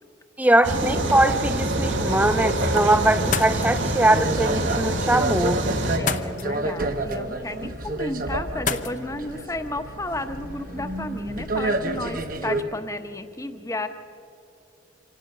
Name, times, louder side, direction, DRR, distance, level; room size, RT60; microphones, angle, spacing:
voice 1, 0.4-5.6, right 1 dB, 10° right, 12 dB, 0.5 m, -21 dB
sound 1, 0.6-6.0, right 1 dB, 85° right, 2.4 m, -25 dB
sound 2, 3.1-11.6, left 6 dB, 40° left, 0.8 m, -36 dB
sound 3, 4.1-12.6, right 2 dB, 45° right, 1.1 m, -29 dB
voice 2, 6.0-13.9, left 2 dB, 15° left, 8 dB, 1.0 m, -33 dB
26.0 x 17.5 x 6.7 m, 2.6 s
head